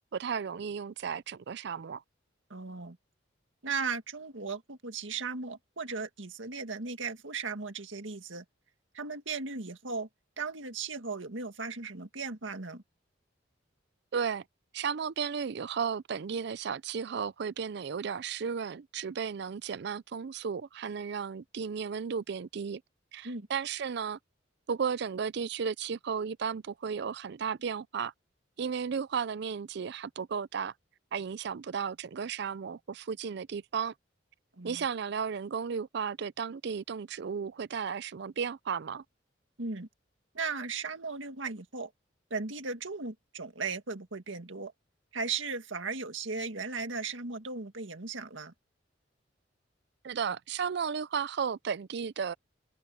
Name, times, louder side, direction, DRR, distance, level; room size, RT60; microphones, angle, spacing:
voice 1, 0.1-2.0 14.1-14.4 14.7-22.8 23.1-24.2 24.7-28.1 28.6-30.7 31.1-33.9 34.6-39.0 50.0-52.3, right 6 dB, 60° right, 0.4 m, -34 dB
voice 2, 2.5-3.0 3.6-8.4 8.9-10.1 10.4-12.8 23.2-23.5 34.5-34.9 39.6-39.9 40.3-41.9 42.3-44.7 45.1-48.5, right 4 dB, 85° right, 1.9 m, -37 dB
head